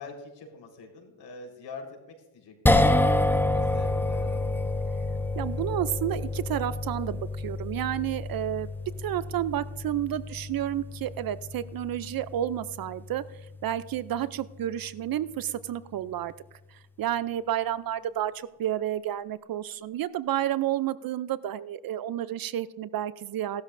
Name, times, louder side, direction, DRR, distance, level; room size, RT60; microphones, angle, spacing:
voice 1, 0.0-4.6 14.0-14.3, left 3 dB, 60° left, 2 dB, 4.3 m, -45 dB
sound 1, 2.7-15.0, left 2 dB, 5° left, 0.6 m, -29 dB
voice 2, 5.4-8.7 9.0-16.3 16.7-23.6, right 12 dB, 50° right, 16 dB, 0.5 m, -31 dB
17.5 x 13.0 x 2.6 m, 1.1 s
cardioid pair, 115°, 46 cm